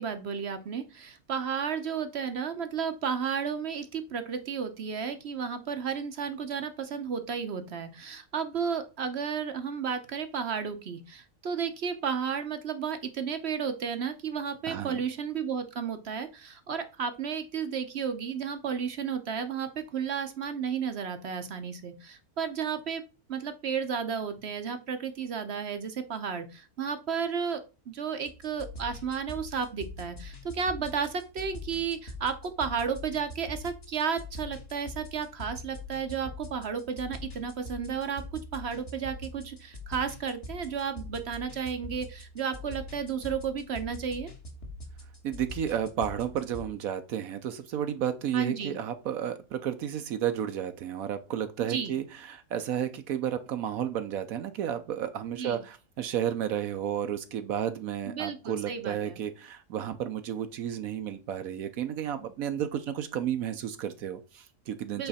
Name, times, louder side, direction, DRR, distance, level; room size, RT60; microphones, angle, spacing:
voice 1, 0.0-23.0 23.3-44.3 48.3-48.8 51.6-51.9 55.3-55.6 58.1-59.2 65.0-65.1, right 6 dB, 55° right, 9 dB, 0.9 m, -33 dB
voice 2, 14.7-15.0 45.2-65.1, right 9 dB, 75° right, 9 dB, 1.0 m, -32 dB
sound 1, 28.3-46.7, left 2 dB, 45° left, 1.6 m, -43 dB
7.9 x 3.2 x 4.1 m, 0.30 s
omnidirectional pair, 1.6 m